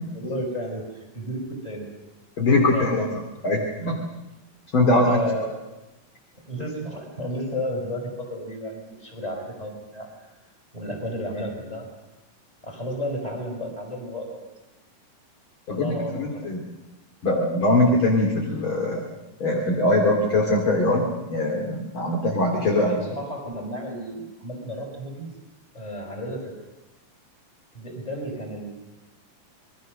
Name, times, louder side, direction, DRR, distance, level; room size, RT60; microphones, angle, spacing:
voice 1, 0.1-1.9 2.5-3.5 3.8-3.9 4.9-5.6 6.5-10.3 10.7-11.9 12.6-14.5 15.7-16.5 22.6-25.3 25.7-26.6 27.7-28.7, equal, 10° left, 1 dB, 5.2 m, -32 dB
voice 2, 2.4-3.1 3.4-4.0 4.7-5.2 15.7-16.6 17.2-19.0 19.4-23.0, left 2 dB, 40° left, 1 dB, 3.0 m, -22 dB
27.0 x 21.5 x 6.6 m, 1.0 s
omnidirectional pair, 3.9 m